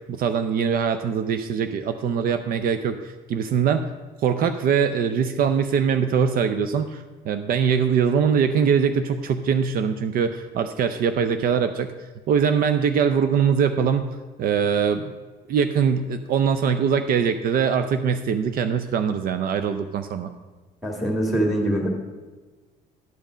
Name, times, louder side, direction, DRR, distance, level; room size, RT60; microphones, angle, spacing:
voice 1, 0.1-3.8 4.2-11.9 12.3-14.0 14.4-15.1 15.5-20.3, right 7 dB, 60° right, 9 dB, 0.5 m, -22 dB
voice 2, 20.8-21.9, right 1 dB, ahead, 1 dB, 2.0 m, -23 dB
11.0 x 5.3 x 5.0 m, 1.3 s
cardioid pair, 110°, 17 cm